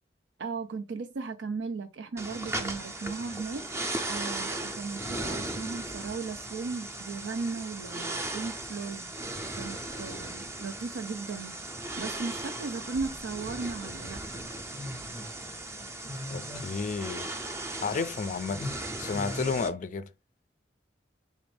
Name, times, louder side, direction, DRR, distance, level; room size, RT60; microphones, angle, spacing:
voice 1, 0.4-3.7 4.1-9.1 9.6-11.6 12.0-14.5, right 4 dB, 85° right, 0.5 m, -36 dB
sound 1, 2.2-19.7, right 1 dB, 15° right, 0.5 m, -37 dB
voice 2, 16.3-17.3 17.8-18.7 19.0-20.1, left 5 dB, 45° left, 0.4 m, -32 dB
4.0 x 2.5 x 3.2 m
head